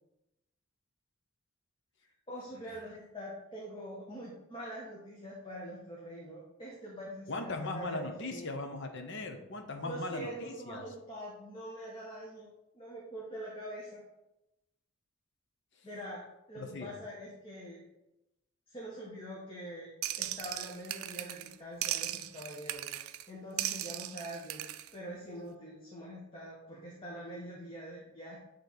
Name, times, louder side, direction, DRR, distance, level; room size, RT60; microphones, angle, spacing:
voice 1, 2.3-8.5 9.8-14.0 15.8-16.2 16.5-17.8 18.7-19.9 20.2-22.9 23.3-24.7 24.9-28.4, equal, 25° left, -5 dB, 1.2 m, -44 dB
voice 2, 7.3-10.8 16.6-16.9, left 2 dB, 60° left, 5 dB, 0.9 m, -39 dB
sound 1, 20.0-21.6 21.8-23.3 23.6-24.9, right 13 dB, 80° right, 0.4 m, -37 dB
9.0 x 3.3 x 4.1 m, 0.92 s
head